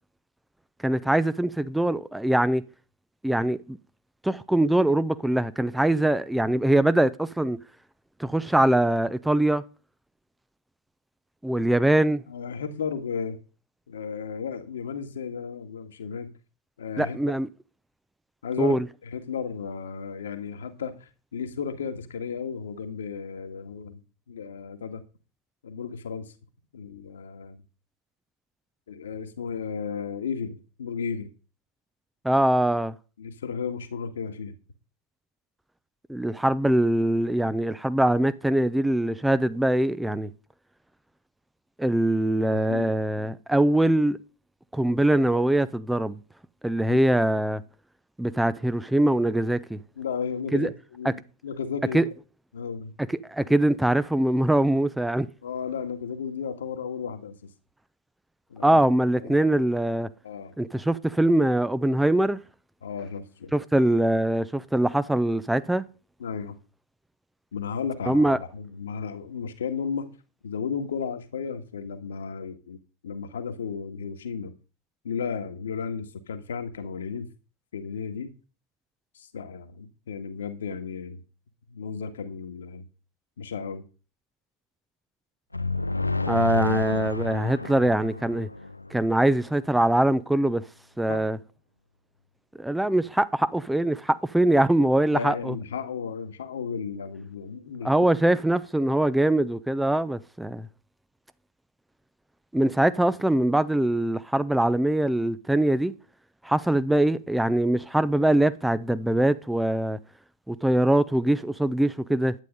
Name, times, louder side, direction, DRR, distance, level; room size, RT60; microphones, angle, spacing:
voice 1, 0.8-2.6 3.2-3.8 4.2-7.6 8.2-9.6 11.4-12.2 17.0-17.5 18.6-18.8 32.2-32.9 36.1-40.3 41.8-44.2 44.7-46.2 46.6-47.6 48.2-49.8 50.5-50.7 51.9-52.0 53.3-55.3 58.6-60.1 60.6-62.4 63.5-65.9 68.1-68.4 86.3-88.5 88.9-90.6 91.0-91.4 92.6-95.5 97.8-100.7 102.5-105.9 106.4-110.0 110.5-112.3, right 1 dB, 5° right, 0.7 m, -23 dB
voice 2, 12.3-13.4 13.9-16.3 16.8-17.4 18.4-18.8 19.0-24.0 24.3-25.0 25.6-26.3 26.7-27.6 28.9-31.3 33.2-34.5 42.5-42.9 46.9-47.0 50.0-52.0 52.5-52.9 55.4-57.5 58.5-58.8 59.2-59.4 60.2-60.6 62.8-63.5 66.2-66.6 67.5-70.1 70.4-72.8 73.0-74.5 75.0-77.3 77.7-78.3 79.2-81.2 81.7-82.9 83.4-83.8 91.1-91.2 95.1-97.9, left 6 dB, 65° left, 1.8 m, -34 dB
sound 1, 85.5-89.3, left 2 dB, 85° left, 0.5 m, -29 dB
11.5 x 9.2 x 5.3 m
figure-of-eight pair, 90°, 0 cm